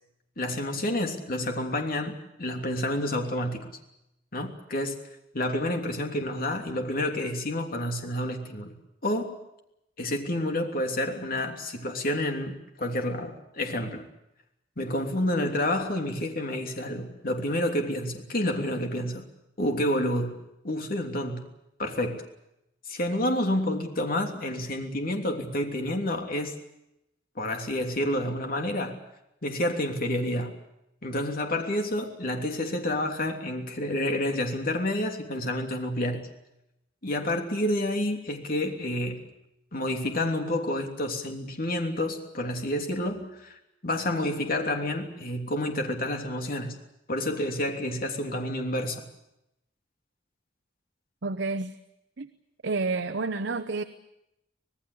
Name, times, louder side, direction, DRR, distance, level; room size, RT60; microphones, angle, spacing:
voice 1, 0.4-3.8 4.3-5.0 5.3-9.4 10.0-14.1 14.8-19.3 19.6-21.5 21.8-22.2 22.9-26.5 27.3-29.0 29.4-30.6 31.0-36.3 37.0-39.3 39.7-46.8 47.1-49.0, left 1 dB, 50° left, 4 dB, 3.1 m, -29 dB
voice 2, 51.2-51.7 52.2-52.3 52.6-53.8, right 3 dB, 65° right, 9 dB, 0.9 m, -29 dB
25.5 x 19.0 x 8.6 m, 0.85 s
head